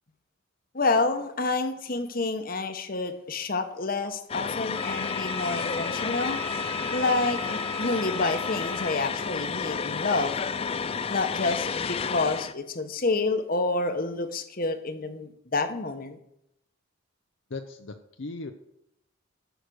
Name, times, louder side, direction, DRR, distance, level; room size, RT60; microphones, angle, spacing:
voice 1, 0.7-6.4 6.9-10.3 11.1-16.2, left 3 dB, 45° left, 9 dB, 1.0 m, -28 dB
sound 1, 4.3-12.5, left 6 dB, 30° left, 0.3 m, -31 dB
Wind instrument woodwind instrument, 4.7-9.0, equal, 10° left, 1.0 m, -39 dB
voice 2, 17.5-18.5, left 3 dB, 65° left, 6 dB, 0.7 m, -37 dB
13.0 x 6.5 x 6.3 m, 0.79 s
head